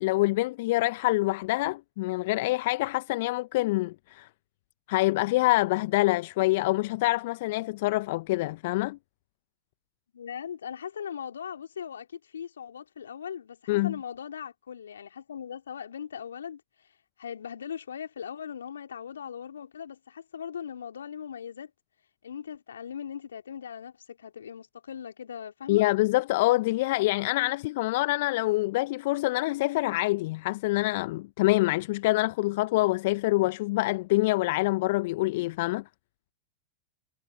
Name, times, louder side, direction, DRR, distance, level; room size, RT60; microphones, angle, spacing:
voice 1, 0.0-4.3 4.9-9.0 13.7-14.0 25.7-35.8, left 20 dB, 55° left, 0.9 m, -26 dB
voice 2, 10.1-16.6 17.2-21.7 22.2-25.8, left 8 dB, 75° left, 3.2 m, -39 dB
figure-of-eight pair, 95°, 0 cm